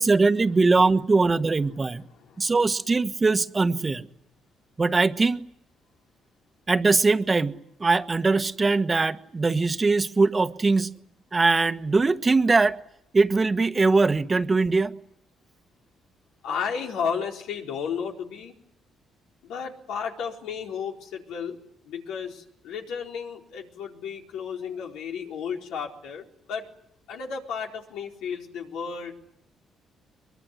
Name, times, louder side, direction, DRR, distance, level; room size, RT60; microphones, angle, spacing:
voice 1, 0.0-2.1 2.4-4.1 4.8-5.4 6.7-10.9 11.3-12.8 13.1-14.9, right 3 dB, 25° right, 1.3 m, -21 dB
voice 2, 16.4-18.5 19.4-21.6 21.8-26.7 27.1-29.1, left 6 dB, 90° left, 4.5 m, -33 dB
23.0 x 23.0 x 9.6 m
cardioid pair, 90°, 0 cm